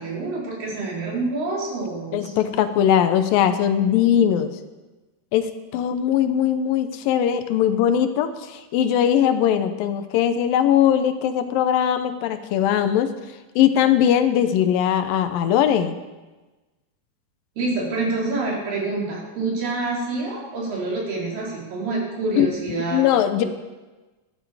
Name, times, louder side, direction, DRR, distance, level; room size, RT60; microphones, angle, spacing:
voice 1, 0.0-2.3 17.6-23.0 23.4-23.5, right 3 dB, 75° right, -4 dB, 5.1 m, -27 dB
voice 2, 2.1-4.5 5.3-13.1 13.6-16.0 22.4-22.5 22.9-23.4, left 9 dB, 80° left, 10 dB, 2.5 m, -20 dB
13.5 x 11.0 x 4.8 m, 1.2 s
omnidirectional pair, 4.0 m